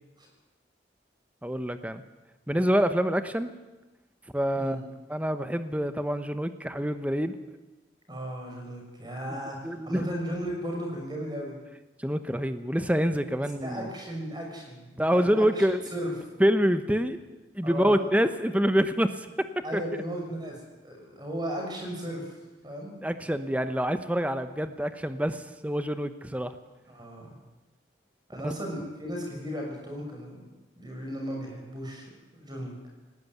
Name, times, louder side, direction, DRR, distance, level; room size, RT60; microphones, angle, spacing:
voice 1, 1.4-2.0 2.5-3.5 4.3-4.8 5.1-7.3 9.6-10.1 12.0-13.9 15.0-15.8 16.4-17.2 17.5-19.3 19.7-19.8 23.0-26.5 28.4-28.5, equal, 10° right, 9 dB, 1.0 m, -26 dB
voice 2, 8.1-11.6 13.6-16.2 17.6-18.1 19.6-22.4 22.6-22.9 26.9-27.4 28.3-30.5 30.8-32.7, equal, 25° right, 1 dB, 6.1 m, -36 dB
18.5 x 18.5 x 9.4 m, 1.1 s
head